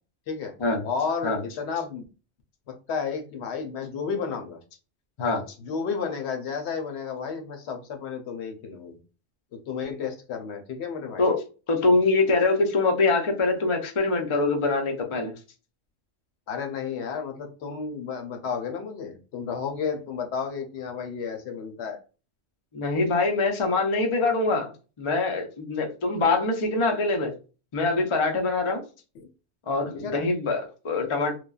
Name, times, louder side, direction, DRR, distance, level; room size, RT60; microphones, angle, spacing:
voice 1, 0.8-2.0 2.7-4.6 5.6-9.0 9.5-11.2 16.5-22.0 29.2-29.3 29.9-30.2, left 6 dB, 65° left, 5 dB, 0.8 m, -32 dB
voice 2, 11.7-15.3 22.7-24.7 25.0-27.3 27.7-28.8 29.7-31.3, left 3 dB, 50° left, 3 dB, 0.3 m, -24 dB
3.1 x 2.1 x 2.3 m, 0.33 s
omnidirectional pair, 1.3 m